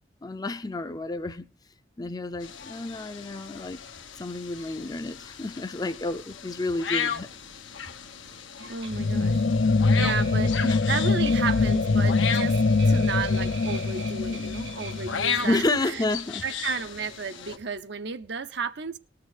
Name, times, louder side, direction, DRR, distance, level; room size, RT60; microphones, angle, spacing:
voice 1, 0.2-1.5 2.0-3.8 4.2-7.3 10.6-10.8 15.4-16.4, left 2 dB, 20° left, 0.6 m, -30 dB
sound 1, 2.4-17.6, left 6 dB, 85° left, 1.2 m, -36 dB
sound 2, 6.7-16.5, right 5 dB, 80° right, 2.7 m, -47 dB
voice 2, 8.7-9.5 9.9-12.6 12.9-16.0 16.4-19.0, right 5 dB, 65° right, 0.7 m, -33 dB
sound 3, 8.9-15.7, left 3 dB, 60° left, 0.6 m, -23 dB
19.0 x 6.7 x 4.9 m
head